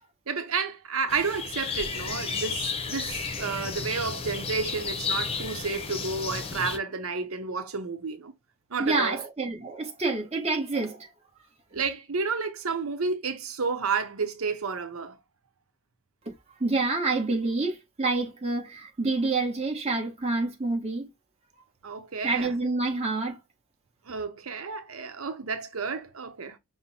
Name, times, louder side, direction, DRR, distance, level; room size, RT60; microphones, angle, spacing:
voice 1, 0.3-8.3 8.7-9.2 11.7-15.2 21.8-22.5 24.1-26.6, right 5 dB, 85° right, 0.8 m, -31 dB
sound 1, 1.1-6.8, left 5 dB, 30° left, 0.7 m, -33 dB
voice 2, 8.8-11.1 16.3-16.4 16.6-21.1 22.2-23.4, right 3 dB, 30° right, 1.2 m, -27 dB
5.5 x 2.1 x 4.1 m
head